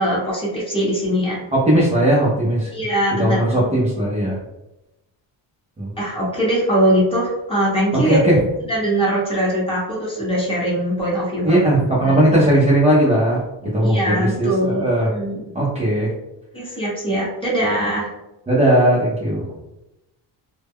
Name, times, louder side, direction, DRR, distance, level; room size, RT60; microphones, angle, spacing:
voice 1, 0.0-1.5 2.7-3.6 6.0-8.2 8.7-11.7 12.0-12.3 13.6-15.4 16.5-18.1, equal, 10° left, -6 dB, 1.0 m, -21 dB
voice 2, 1.5-2.7 3.2-4.4 5.8-5.9 7.9-8.4 11.4-13.4 13.7-15.1 15.5-16.1 18.5-19.5, right 1 dB, 15° right, -7 dB, 0.5 m, -17 dB
2.1 x 2.1 x 3.4 m, 0.95 s
cardioid pair, 125°, 47 cm